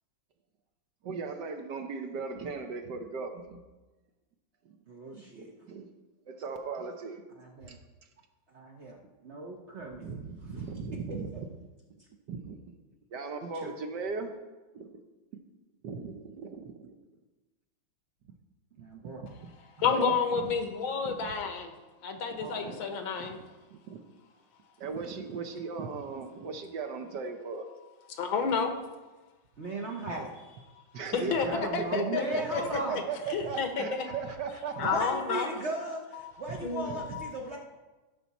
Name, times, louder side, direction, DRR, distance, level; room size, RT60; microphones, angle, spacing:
voice 1, 1.0-3.6 4.6-4.8 5.1-5.9 6.3-7.2 7.7-7.8 10.0-11.5 12.3-12.6 13.1-14.3 14.7-14.9 15.3-15.4 15.8-17.0 18.8-18.9 19.2-19.3 19.8-20.5 21.0-21.3 22.3-22.7 23.2-23.4 23.7-24.0 24.8-27.6 30.9-35.0 36.5-36.6 36.9-37.2, right 5 dB, 65° right, 6 dB, 1.3 m, -38 dB
voice 2, 4.9-5.5 7.4-7.8 8.5-9.0 9.2-10.1 10.7-10.8 13.4-13.7 18.8-19.3 22.4-22.8 29.6-30.3 31.2-33.1 34.8-37.6, right 2 dB, 45° right, 0 dB, 0.9 m, -37 dB
voice 3, 19.8-21.7 22.0-23.4 28.2-28.8 31.1-33.0 33.3-34.1 34.8-35.5 36.6-37.3, left 5 dB, 85° left, 5 dB, 1.9 m, -30 dB
15.5 x 5.9 x 4.1 m, 1.2 s
omnidirectional pair, 2.2 m